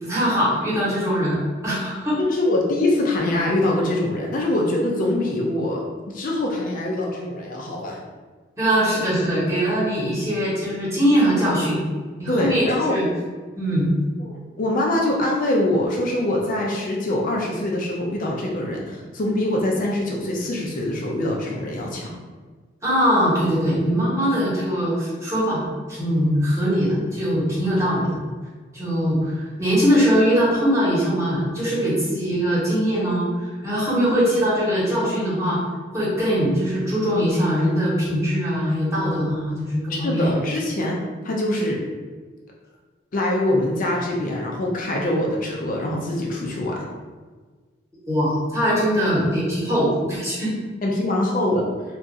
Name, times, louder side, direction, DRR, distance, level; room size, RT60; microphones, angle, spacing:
voice 1, 0.0-2.2 8.6-11.8 12.2-13.1 13.5-13.9 22.8-28.2 28.7-35.6 35.9-40.4 48.1-50.5, equal, 15° right, -8 dB, 1.0 m, -21 dB
voice 2, 2.2-8.0 12.3-13.0 14.2-22.1 33.9-34.1 39.9-41.8 43.1-46.9 50.8-51.6, left 1 dB, 45° left, -1 dB, 0.4 m, -24 dB
2.9 x 2.4 x 2.6 m, 1.4 s
head